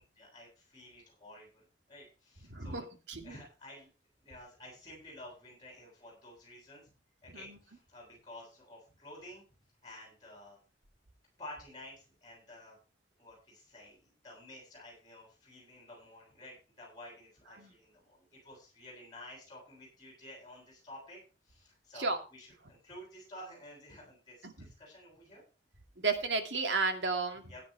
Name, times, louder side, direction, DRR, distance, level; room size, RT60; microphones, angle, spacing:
voice 1, 0.0-2.9 3.2-3.9 4.2-6.9 7.2-9.4 9.8-10.6 11.4-12.8 13.2-21.2 21.4-25.4 27.5-27.6, left 1 dB, 25° left, -3 dB, 8.0 m, -52 dB
voice 2, 2.5-3.3 7.3-7.6 17.6-17.7 22.0-22.2 24.4-24.5 26.0-27.4, right 4 dB, 85° right, 5 dB, 2.4 m, -33 dB
16.5 x 10.0 x 3.5 m, 0.33 s
head